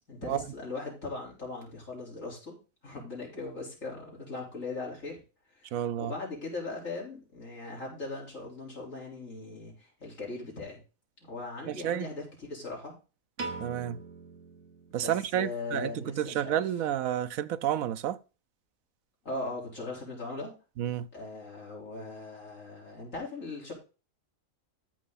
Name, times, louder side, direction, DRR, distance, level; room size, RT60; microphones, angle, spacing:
voice 1, 0.1-5.2 5.6-10.8 11.2-12.9 14.9-16.6 19.2-20.5 21.1-23.7, left 3 dB, 70° left, 4.4 m, -39 dB
voice 2, 5.7-6.1 11.6-12.1 13.6-14.0 14.9-18.2 20.8-21.1, right 10 dB, 90° right, 1.1 m, -30 dB
Piano, 13.4-15.6, right 3 dB, 60° right, 1.8 m, -42 dB
13.5 x 5.6 x 4.1 m
omnidirectional pair, 1.4 m